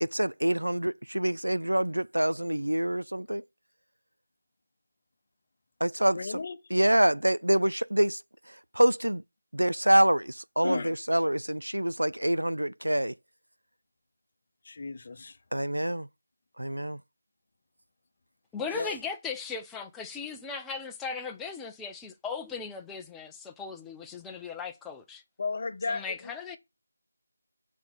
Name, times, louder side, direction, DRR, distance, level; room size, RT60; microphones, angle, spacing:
voice 1, 0.0-3.4 5.8-6.4 6.7-8.2 8.7-9.2 9.5-13.1 15.5-16.1 16.6-17.0, right 1 dB, 85° right, 0.3 m, -26 dB
voice 2, 6.1-6.6 10.6-11.0 14.6-15.4 18.7-19.0 25.4-26.6, left 4 dB, 40° left, 0.8 m, -34 dB
voice 3, 18.5-25.2 25.9-26.6, left 5 dB, 5° left, 0.6 m, -38 dB
7.2 x 4.2 x 6.4 m
figure-of-eight pair, 165°, 0 cm